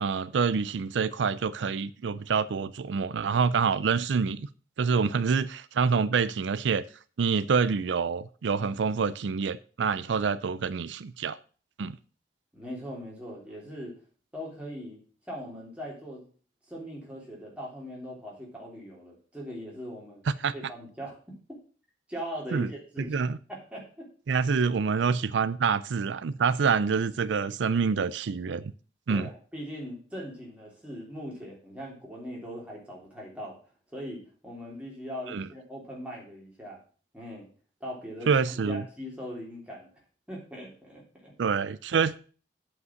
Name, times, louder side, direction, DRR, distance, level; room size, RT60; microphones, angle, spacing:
voice 1, 0.0-4.5 4.8-6.8 7.2-11.4 11.8-12.0 20.4-20.5 22.5-22.7 23.0-23.4 24.3-28.6 29.1-29.3 35.3-35.4 38.3-38.8 41.4-42.2, right 5 dB, 90° right, 0.4 m, -26 dB
voice 2, 12.5-13.9 14.3-15.0 15.3-16.2 16.7-20.2 20.5-21.2 21.5-21.6 22.1-23.2 23.5-24.1 29.1-33.6 33.9-36.8 37.1-37.5 37.8-39.9 40.3-41.3, equal, 5° right, 3.3 m, -40 dB
8.2 x 5.4 x 7.6 m
head